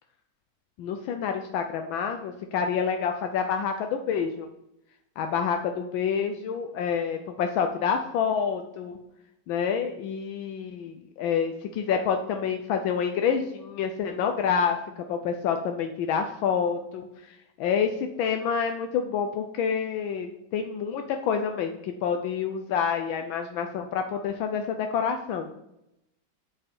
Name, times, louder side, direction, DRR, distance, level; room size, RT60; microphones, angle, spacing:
voice 1, 0.8-4.5 5.2-9.0 9.5-14.8 15.1-25.5, left 7 dB, 80° left, 5 dB, 1.5 m, -28 dB
9.3 x 5.5 x 5.4 m, 0.83 s
omnidirectional pair, 2.2 m